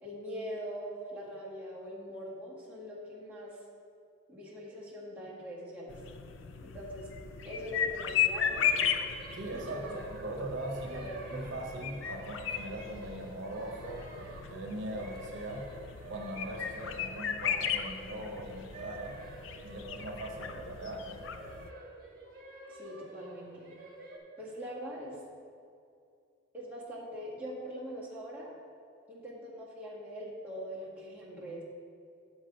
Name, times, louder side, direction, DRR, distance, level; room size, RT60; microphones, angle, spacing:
voice 1, 0.0-3.6 4.3-6.0 6.6-7.2 7.4-9.0 9.5-9.9 10.4-10.5 10.9-11.3 20.4-20.5 22.7-23.8 24.4-25.2 26.5-28.5 29.1-31.6, equal, 10° right, -8 dB, 1.7 m, -42 dB
sound 1, 5.9-21.7, left 8 dB, 75° left, 0.5 m, -36 dB
sound 2, 8.5-24.2, right 2 dB, 45° right, 1.4 m, -48 dB
voice 2, 9.3-15.7 16.1-19.2 19.6-21.3, right 1 dB, 70° right, 2 dB, 0.9 m, -40 dB
7.3 x 6.2 x 5.3 m, 2.4 s
head